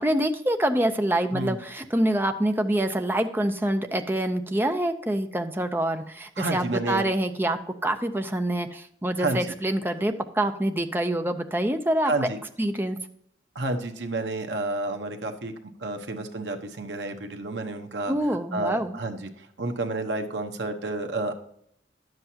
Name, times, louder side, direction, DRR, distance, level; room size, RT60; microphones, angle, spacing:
voice 1, 0.0-12.3 12.6-13.0 18.1-19.0, right 1 dB, 10° right, 6 dB, 0.6 m, -26 dB
voice 2, 6.4-7.0 9.2-9.5 12.0-12.4 13.5-15.5 15.8-18.1 18.5-21.3, right 2 dB, 75° right, 5 dB, 1.1 m, -30 dB
11.0 x 7.8 x 2.9 m, 0.70 s
head